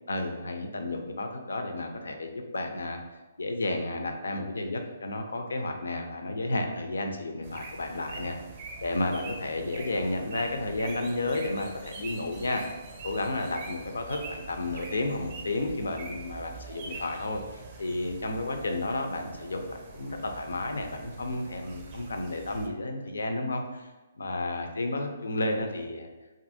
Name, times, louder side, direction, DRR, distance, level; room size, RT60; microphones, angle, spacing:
voice 1, 0.1-3.0 3.4-8.4 8.8-12.6 13.0-23.9 24.2-26.1, left 2 dB, 85° left, 4 dB, 0.4 m, -32 dB
sound 1, 7.4-22.7, right 4 dB, 40° right, 0.4 m, -44 dB
2.6 x 2.5 x 2.6 m, 1.1 s
hypercardioid pair, 145°, 0 cm